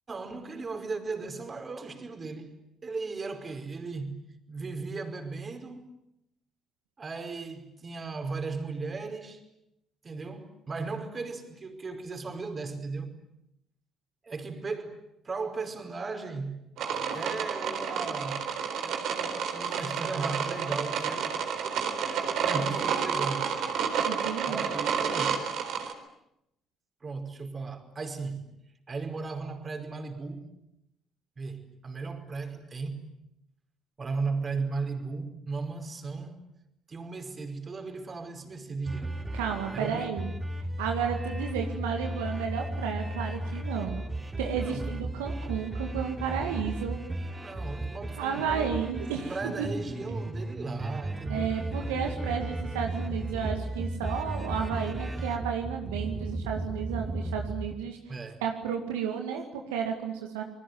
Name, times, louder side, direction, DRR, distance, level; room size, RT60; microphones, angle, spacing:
voice 1, 0.1-2.5 2.8-4.2 4.5-5.9 7.0-9.4 10.0-13.2 14.2-16.6 17.1-18.5 18.8-21.4 22.0-23.6 24.4-25.4 27.0-28.4 28.9-30.5 31.4-33.1 34.0-36.4 36.9-39.2 39.7-40.1 44.6-45.0 47.4-48.7 49.3-51.5 58.1-58.4, right 4 dB, 40° right, 5.2 m, -36 dB
sound 1, 16.8-25.9, right 6 dB, 70° right, 4.0 m, -30 dB
voice 2, 24.0-24.6 39.3-40.3 40.8-44.1 44.4-47.0 48.2-49.7 51.3-58.0 58.4-60.4, right 7 dB, 85° right, 2.2 m, -32 dB
sound 2, 38.8-57.7, right 1 dB, 25° right, 4.0 m, -35 dB
28.5 x 20.5 x 9.5 m
hypercardioid pair, 55°, 0 cm